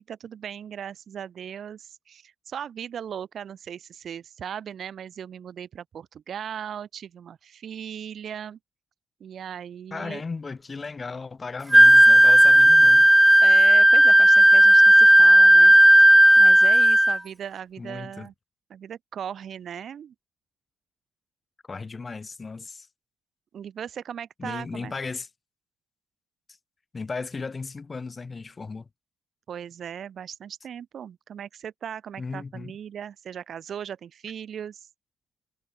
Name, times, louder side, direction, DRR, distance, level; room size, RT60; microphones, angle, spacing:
voice 1, 0.0-8.6 9.2-10.2 13.4-16.0 16.4-18.3 18.7-20.1 23.5-24.9 29.5-34.9, right 8 dB, 60° right, 5.6 m, -38 dB
voice 2, 9.9-13.1 17.8-18.3 21.7-22.9 24.4-25.3 26.9-28.9 32.2-32.7, left 4 dB, 30° left, 2.6 m, -36 dB
Wind instrument woodwind instrument, 11.7-17.2, right 1 dB, 5° right, 0.4 m, -13 dB
cardioid pair, 90°, 0 cm